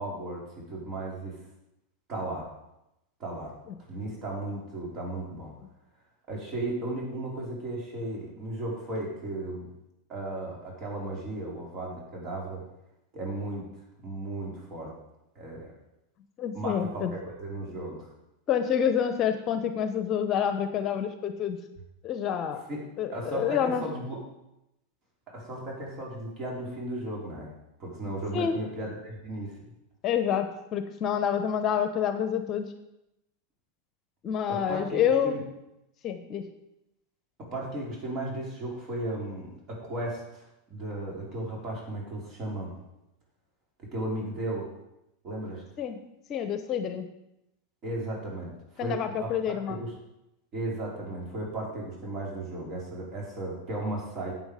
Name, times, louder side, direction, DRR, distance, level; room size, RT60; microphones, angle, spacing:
voice 1, 0.0-1.4 2.1-2.5 3.2-3.5 3.9-5.5 6.3-9.7 10.1-12.6 13.1-13.7 14.0-14.9 15.3-15.7 16.5-18.1 22.7-22.8 23.1-24.2 25.3-27.5 27.8-29.6 34.5-35.4 37.4-42.7 43.9-44.7 45.2-45.6 47.8-49.9 50.5-54.3, right 1 dB, 40° right, -3 dB, 4.6 m, -35 dB
voice 2, 16.4-17.1 18.5-21.6 22.0-22.6 23.0-23.8 28.3-28.6 30.0-32.7 34.2-35.4 36.0-36.5 45.8-46.0 46.3-47.1 48.8-49.8, left 8 dB, 40° left, 10 dB, 0.9 m, -28 dB
11.5 x 8.1 x 5.0 m, 0.88 s
figure-of-eight pair, 90°, 0 cm